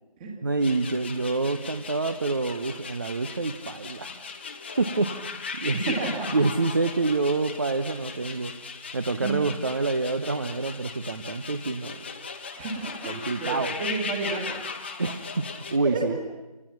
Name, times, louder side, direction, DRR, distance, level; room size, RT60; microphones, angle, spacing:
voice 1, 0.4-4.1 4.8-6.0 6.3-8.5 8.9-12.0 13.1-13.7 15.0-16.2, right 3 dB, 30° right, 9 dB, 1.0 m, -27 dB
sound 1, 0.6-15.8, left 5 dB, 15° left, 1.1 m, -38 dB
voice 2, 5.7-6.3 9.2-9.4 12.5-14.6 15.8-16.4, right 3 dB, 10° right, 2 dB, 2.0 m, -31 dB
29.0 x 28.0 x 6.0 m, 1.1 s
figure-of-eight pair, 160°, 20 cm